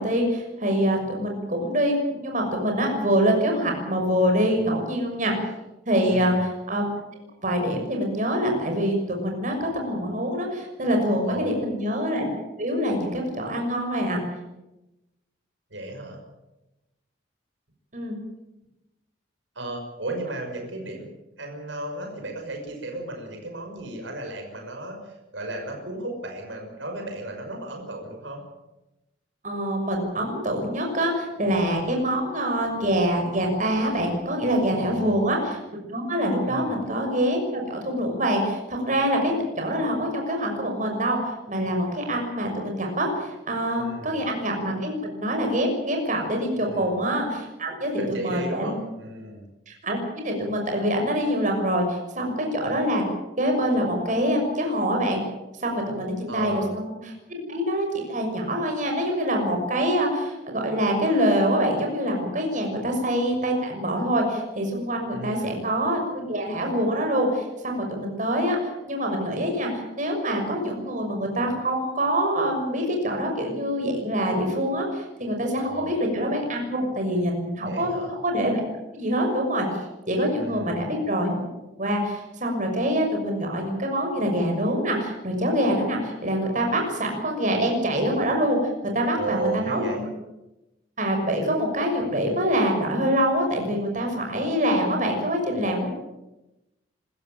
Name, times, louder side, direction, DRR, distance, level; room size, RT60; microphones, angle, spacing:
voice 1, 0.0-5.3 5.9-6.9 7.4-12.3 12.6-14.2 17.9-18.2 29.4-48.8 49.7-53.0 53.4-55.2 55.6-56.9 57.3-78.6 78.9-79.6 80.1-81.5 81.8-88.6 88.9-90.1 91.0-95.9, equal, 40° right, 2 dB, 6.3 m, -25 dB
voice 2, 6.1-6.4 11.3-11.7 15.7-16.2 19.5-21.1 21.4-28.4 34.7-35.3 36.4-36.8 43.8-44.2 46.6-47.0 48.0-49.5 56.3-56.7 65.1-65.6 75.6-75.9 77.6-78.1 80.4-80.9 89.2-90.0 95.8-95.9, right 2 dB, 80° right, 2 dB, 5.9 m, -34 dB
26.0 x 14.5 x 9.1 m, 0.97 s
head